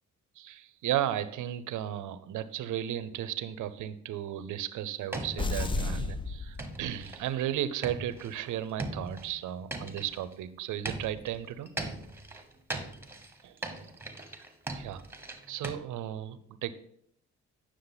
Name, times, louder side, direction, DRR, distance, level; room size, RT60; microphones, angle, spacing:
voice 1, 0.4-11.7 13.4-13.5 14.8-15.0 15.5-16.7, right 11 dB, 80° right, 14 dB, 0.7 m, -34 dB
sound 1, 5.1-5.8 6.6-7.4 7.8-10.3 10.8-15.7, right 2 dB, 10° right, 1.3 m, -39 dB
sound 2, 5.4-7.3, left 3 dB, 15° left, 0.5 m, -33 dB
9.7 x 6.3 x 3.9 m, 0.68 s
cardioid pair, 90°, 30 cm